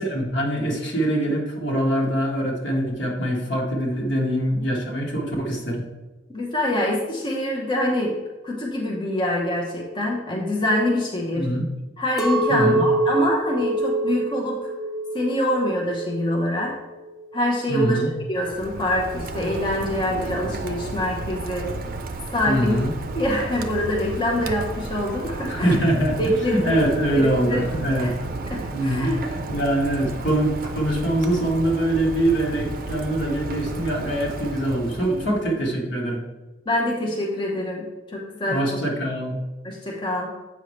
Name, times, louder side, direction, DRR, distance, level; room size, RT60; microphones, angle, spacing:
voice 1, 0.0-5.8 11.4-11.7 12.5-12.8 17.7-18.1 22.4-22.9 25.5-28.2 28.7-29.1 29.5-36.2 38.5-39.4, right 1 dB, 80° left, -1 dB, 1.6 m, -23 dB
voice 2, 6.3-8.2 8.4-11.5 12.0-14.7 15.1-16.8 17.3-18.0 18.3-21.7 22.3-22.7 23.1-25.7 26.2-26.8 27.1-27.6 28.0-28.1 28.5-29.2 35.1-35.2 36.7-38.6 39.6-40.4, left 1 dB, 25° left, -1 dB, 0.9 m, -25 dB
Chink clink, 12.2-16.5 16.9-17.5, right 2 dB, ahead, 0.7 m, -25 dB
Rain, 18.3-35.6, right 2 dB, 50° right, 0.5 m, -33 dB
8.1 x 5.5 x 3.2 m, 1.2 s
head